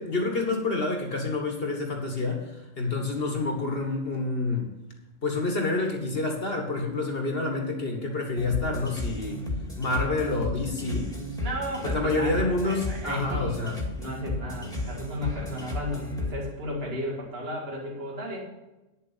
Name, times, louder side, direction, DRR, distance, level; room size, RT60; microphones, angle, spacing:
voice 1, 0.0-4.7 5.2-9.4 9.8-11.1 11.8-13.8, left 3 dB, 45° left, 2 dB, 1.8 m, -28 dB
sound 1, 8.4-16.3, left 1 dB, 5° left, 2.0 m, -33 dB
voice 2, 11.4-13.7 14.0-18.4, left 1 dB, 50° right, -1 dB, 2.3 m, -34 dB
10.0 x 7.3 x 5.6 m, 0.99 s
omnidirectional pair, 1.4 m